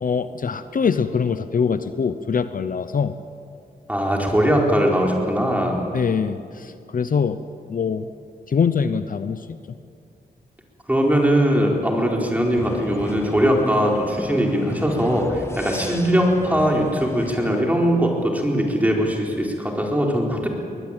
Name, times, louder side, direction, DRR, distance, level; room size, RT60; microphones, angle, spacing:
voice 1, 0.0-3.1 5.9-7.4 7.7-8.1 8.5-9.8, left 6 dB, 55° left, 11 dB, 0.8 m, -23 dB
voice 2, 3.9-5.8 10.9-20.5, equal, 10° right, 0 dB, 4.3 m, -20 dB
sound 1, 12.6-17.6, left 2 dB, 15° left, 1.1 m, -34 dB
22.0 x 20.5 x 9.0 m, 2.5 s
wide cardioid pair, 115°, 17 cm